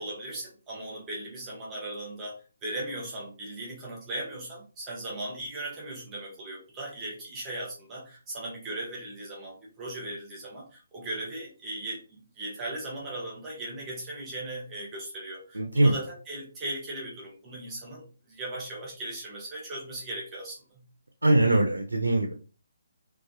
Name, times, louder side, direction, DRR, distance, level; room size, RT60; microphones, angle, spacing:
voice 1, 0.0-12.0 12.3-20.6, right 1 dB, 15° right, -3 dB, 0.8 m, -38 dB
voice 2, 15.5-15.9 21.2-22.3, right 2 dB, 80° right, 3 dB, 0.4 m, -22 dB
2.4 x 2.3 x 2.6 m, 0.35 s
figure-of-eight pair, 140°, 0 cm